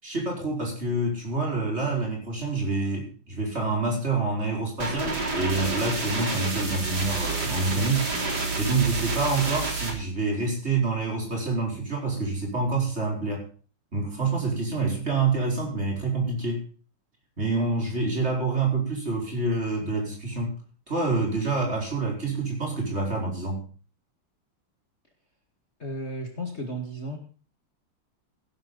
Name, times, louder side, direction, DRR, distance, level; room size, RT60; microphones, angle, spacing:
voice 1, 0.0-8.1 8.6-13.5 13.9-16.7 17.4-20.5 20.9-23.7, right 3 dB, 30° right, 0 dB, 5.5 m, -27 dB
sound 1, 4.8-9.9, right 3 dB, 50° right, 4.0 m, -29 dB
voice 2, 25.8-27.2, equal, 30° left, 3 dB, 2.3 m, -33 dB
16.5 x 11.5 x 3.9 m, 0.38 s
omnidirectional pair, 2.3 m